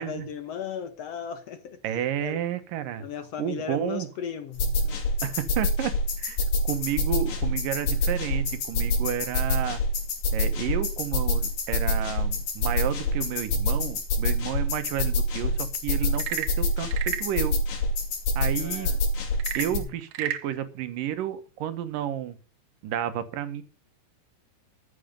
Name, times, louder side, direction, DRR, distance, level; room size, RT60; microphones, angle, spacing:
voice 1, 0.0-1.8 2.2-2.4 3.0-5.0 18.6-19.0 19.6-19.9, left 7 dB, 60° left, 1.9 m, -36 dB
voice 2, 1.8-3.0 3.4-4.1 5.2-5.9 6.2-6.4 6.6-9.8 10.3-17.6 18.4-18.9 19.5-22.4 22.8-23.6, right 10 dB, 85° right, 2.9 m, -31 dB
sound 1, 4.6-19.8, left 1 dB, 80° left, 4.4 m, -26 dB
Frog / Percussion / Wood, 16.1-17.4 19.3-20.5, right 11 dB, 70° right, 2.1 m, -33 dB
14.0 x 8.5 x 5.2 m
omnidirectional pair, 3.8 m